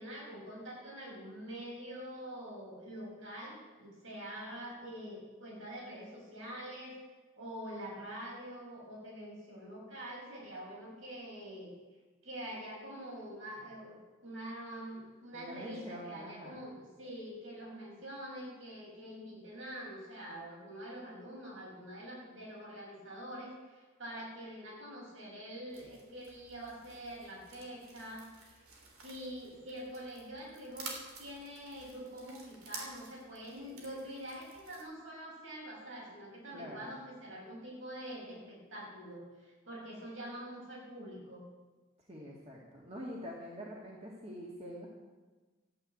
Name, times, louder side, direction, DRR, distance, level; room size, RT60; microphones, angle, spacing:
voice 1, 0.0-7.0 7.4-11.7 12.2-14.0 14.2-28.3 29.0-41.4, equal, 70° right, -3 dB, 6.4 m, -45 dB
voice 2, 15.3-16.6 36.5-36.9 42.1-44.9, equal, 30° right, -3 dB, 2.0 m, -45 dB
sound 1, 25.7-34.8, right 4 dB, 90° right, 3.4 m, -51 dB
13.5 x 9.1 x 8.5 m, 1.3 s
head